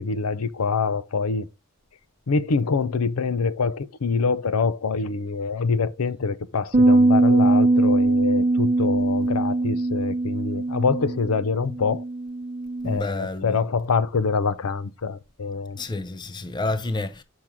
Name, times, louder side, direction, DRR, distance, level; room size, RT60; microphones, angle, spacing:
voice 1, 0.0-1.5 2.3-12.0 12.8-15.8, left 4 dB, 80° left, 0.6 m, -25 dB
sound 1, 6.7-13.0, right 2 dB, 35° right, 0.7 m, -21 dB
voice 2, 12.8-13.6 15.8-17.2, left 2 dB, 20° left, 0.5 m, -29 dB
6.5 x 5.9 x 3.5 m
head